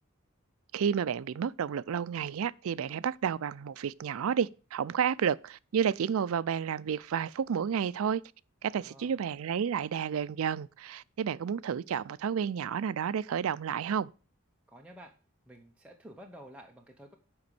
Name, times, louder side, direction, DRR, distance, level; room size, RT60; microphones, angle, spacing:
voice 1, 0.7-8.2 8.6-14.1, right 7 dB, 70° right, 0.4 m, -31 dB
voice 2, 8.7-9.3 14.7-15.1 15.4-17.2, equal, 5° right, 0.8 m, -51 dB
7.9 x 5.2 x 6.8 m
head